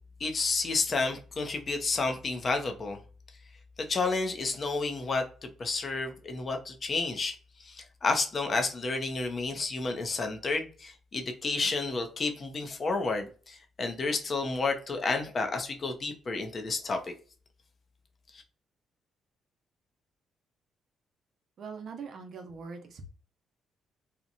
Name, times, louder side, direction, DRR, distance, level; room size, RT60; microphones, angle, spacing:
voice 1, 0.2-3.0 3.8-7.3 7.6-17.1 18.3-18.4, left 3 dB, 40° left, 0.6 m, -31 dB
voice 2, 21.6-23.1, right 5 dB, 60° right, 0.7 m, -42 dB
2.8 x 2.1 x 2.5 m
cardioid pair, 90°, 0 cm